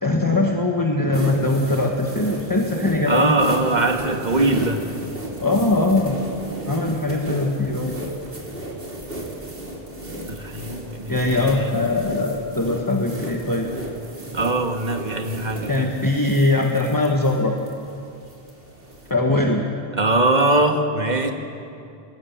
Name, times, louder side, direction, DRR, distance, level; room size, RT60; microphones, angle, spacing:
voice 1, 0.0-3.3 5.4-6.2 6.7-8.0 11.1-13.7 15.7-17.5 19.1-19.6, left 2 dB, 20° left, 0 dB, 1.5 m, -21 dB
sound 1, 1.1-19.1, right 1 dB, 65° right, 3.4 m, -34 dB
voice 2, 3.1-4.8 10.3-11.7 14.3-15.9 19.9-21.3, right 2 dB, 45° right, 4 dB, 1.8 m, -21 dB
25.5 x 19.0 x 7.3 m, 2.6 s
omnidirectional pair, 1.0 m